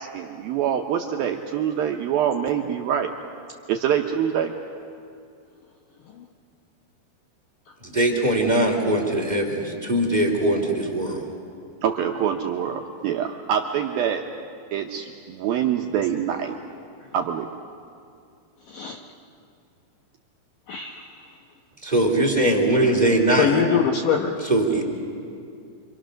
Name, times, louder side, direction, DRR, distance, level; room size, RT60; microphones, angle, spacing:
voice 1, 0.0-3.1 3.7-4.5 11.8-14.2 14.7-16.5 17.1-17.5, right 9 dB, 75° right, 2 dB, 2.3 m, -25 dB
voice 2, 7.8-11.2 21.8-23.6 24.4-24.8, right 1 dB, 15° right, 2 dB, 1.6 m, -21 dB
voice 3, 18.7-19.0 20.7-21.3 23.4-24.3, left 7 dB, 70° left, 2 dB, 2.1 m, -23 dB
27.0 x 26.0 x 6.4 m, 2.4 s
omnidirectional pair, 5.2 m